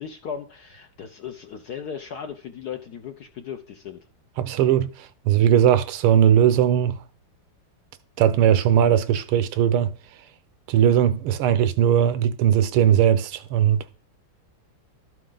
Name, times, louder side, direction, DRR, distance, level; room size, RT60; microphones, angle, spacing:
voice 1, 0.0-4.0, left 7 dB, 65° left, 1.0 m, -36 dB
voice 2, 4.4-7.0 8.2-9.9 10.7-13.8, right 9 dB, 80° right, 1.6 m, -19 dB
12.5 x 7.6 x 3.9 m
omnidirectional pair, 2.4 m